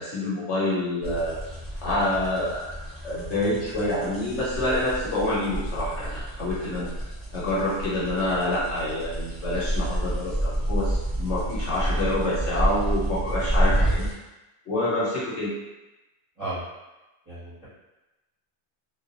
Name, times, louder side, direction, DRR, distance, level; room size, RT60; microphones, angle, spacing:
voice 1, 0.0-1.4 1.8-2.7 3.0-6.9 7.3-14.1 14.7-15.5, left 1 dB, 75° left, -8 dB, 1.2 m, -27 dB
sound 1, 1.0-14.1, right 1 dB, 15° left, 0.8 m, -29 dB
voice 2, 17.3-17.7, right 2 dB, 15° right, -13 dB, 0.9 m, -34 dB
2.4 x 2.2 x 2.6 m, 1.0 s
omnidirectional pair, 1.2 m